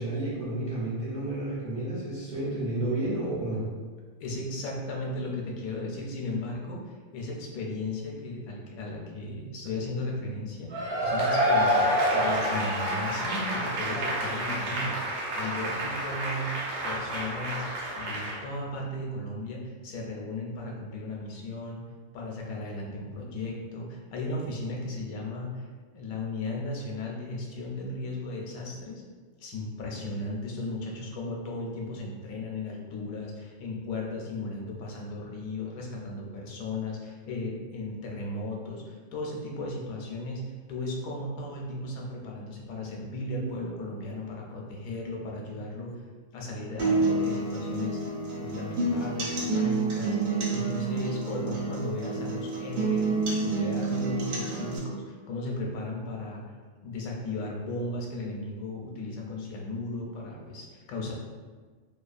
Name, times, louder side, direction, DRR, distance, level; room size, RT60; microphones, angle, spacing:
voice 1, 0.0-3.6, right 2 dB, 55° right, -10 dB, 0.5 m, -31 dB
voice 2, 4.2-16.5 16.8-17.7 18.0-21.8 22.1-25.7 25.9-29.0 29.4-45.9 46.3-56.4 56.8-61.1, left 2 dB, 80° left, -1 dB, 1.0 m, -36 dB
Cheering / Applause / Crowd, 10.7-18.4, equal, 90° right, 1.1 m, -28 dB
sound 1, 46.8-54.8, right 3 dB, 70° right, 1.0 m, -29 dB
2.7 x 2.3 x 2.4 m, 1.4 s
omnidirectional pair, 1.5 m